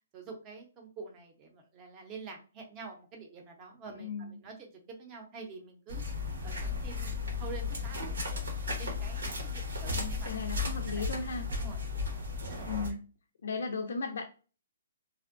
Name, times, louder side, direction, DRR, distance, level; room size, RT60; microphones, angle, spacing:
voice 1, 0.1-8.4 8.8-10.3 10.7-11.0 11.5-13.0, right 4 dB, 25° right, 2 dB, 0.6 m, -48 dB
voice 2, 4.0-4.4 9.9-11.5 12.7-13.0 13.4-14.3, left 4 dB, 70° left, 3 dB, 0.4 m, -36 dB
sound 1, 5.9-12.9, left 4 dB, 90° right, 1.1 m, -35 dB
2.5 x 2.1 x 2.5 m, 0.35 s
hypercardioid pair, 155°, 0 cm